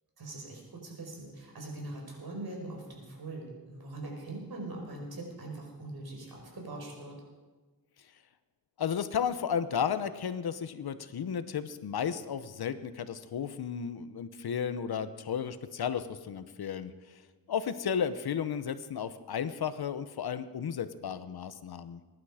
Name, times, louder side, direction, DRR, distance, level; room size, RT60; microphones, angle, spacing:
voice 1, 0.2-7.1, right 2 dB, 75° right, 0 dB, 4.9 m, -42 dB
voice 2, 8.8-17.2 17.5-22.0, left 7 dB, 85° left, 12 dB, 0.9 m, -33 dB
21.5 x 11.0 x 4.9 m, 1.3 s
wide cardioid pair, 80°, 37 cm